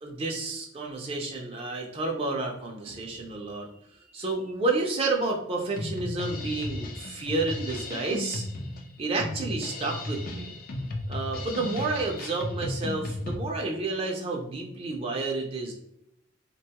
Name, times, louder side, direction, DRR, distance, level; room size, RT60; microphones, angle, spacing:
voice 1, 0.0-3.7 4.1-8.4 9.0-10.5 11.1-15.7, right 3 dB, 30° right, 1 dB, 0.4 m, -30 dB
Drum kit, 5.8-13.4, left 1 dB, 50° left, 0.5 m, -35 dB
3.4 x 2.2 x 2.8 m, 0.76 s
head